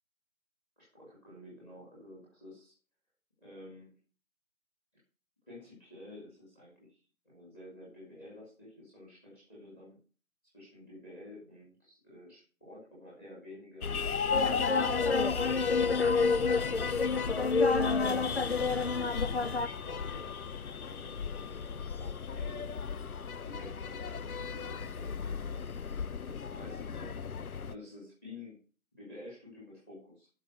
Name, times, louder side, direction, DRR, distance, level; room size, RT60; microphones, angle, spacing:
voice 1, 0.8-2.7 3.4-3.9 5.5-10.0 10.5-15.2 19.6-20.3 20.9-23.0 23.4-25.9 26.3-27.4 27.7-28.6 28.9-30.3, left 1 dB, 5° left, -5 dB, 2.0 m, -51 dB
sound 1, 13.8-27.7, left 6 dB, 90° left, 0.7 m, -36 dB
sound 2, 14.3-19.7, left 4 dB, 50° left, 0.7 m, -29 dB
11.5 x 5.4 x 6.4 m, 0.37 s
figure-of-eight pair, 165°, 42 cm